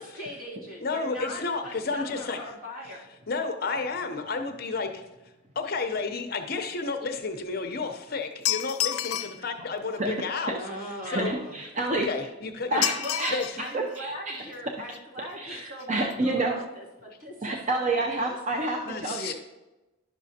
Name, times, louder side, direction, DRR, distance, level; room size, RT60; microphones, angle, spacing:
voice 1, 0.0-3.0 9.2-9.3 10.5-11.6 12.7-18.4, equal, 75° right, -6 dB, 2.5 m, -40 dB
voice 2, 0.8-2.4 3.3-5.0 5.6-10.6 11.0-11.4 12.0-12.7 13.3-13.5 15.5-15.6 18.9-19.3, left 4 dB, 45° left, 6 dB, 0.7 m, -31 dB
sound 1, 8.4-9.4 12.8-13.6 13.9-14.0 14.9-15.0 15.3-15.4 15.7-15.8 16.1-16.2, left 12 dB, 85° left, 0.4 m, -29 dB
voice 3, 11.0-12.1 12.7-14.4 15.3-16.6 17.4-19.3, right 2 dB, 35° right, 1 dB, 0.5 m, -29 dB
11.0 x 6.1 x 2.8 m, 1.0 s
head